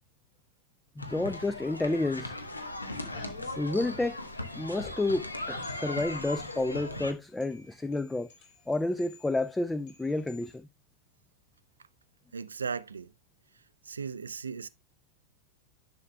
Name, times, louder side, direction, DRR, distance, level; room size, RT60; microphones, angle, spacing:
sound 1, 1.0-7.1, left 2 dB, 80° left, 1.0 m, -38 dB
voice 1, 1.0-2.4 3.6-4.2 4.5-8.3 8.7-10.7, left 2 dB, 5° left, 0.3 m, -30 dB
sound 2, 2.7-10.6, left 4 dB, 55° left, 3.4 m, -53 dB
voice 2, 12.3-13.1 13.9-14.7, right 5 dB, 75° right, 0.4 m, -36 dB
10.5 x 6.4 x 2.3 m
figure-of-eight pair, 90°, 0 cm